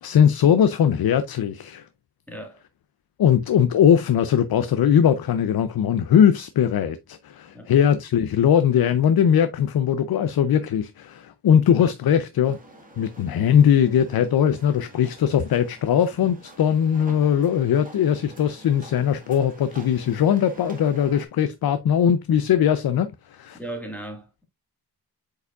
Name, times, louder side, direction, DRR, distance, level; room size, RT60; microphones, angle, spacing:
voice 1, 0.0-1.9 3.2-12.6 13.0-23.6, left 8 dB, 65° left, 0.6 m, -20 dB
voice 2, 2.3-2.6 7.5-7.7 23.5-24.4, right 1 dB, 5° left, 1.7 m, -36 dB
sound 1, 12.4-21.3, right 2 dB, 20° right, 1.7 m, -47 dB
8.1 x 4.9 x 2.4 m
wide cardioid pair, 160°, 39 cm